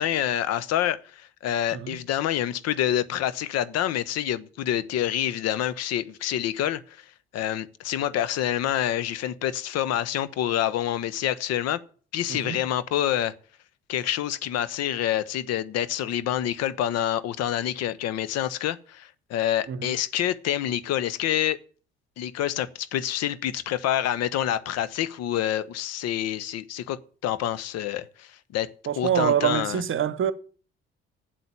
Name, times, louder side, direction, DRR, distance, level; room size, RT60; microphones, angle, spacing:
voice 1, 0.0-11.8 12.1-13.3 13.9-21.6 22.2-28.7 29.0-29.8, left 11 dB, 55° left, 0.8 m, -27 dB
voice 2, 12.3-12.6 19.7-20.0 28.9-30.3, right 9 dB, 40° right, 0.9 m, -25 dB
7.9 x 7.8 x 8.6 m
figure-of-eight pair, 45°, 30 cm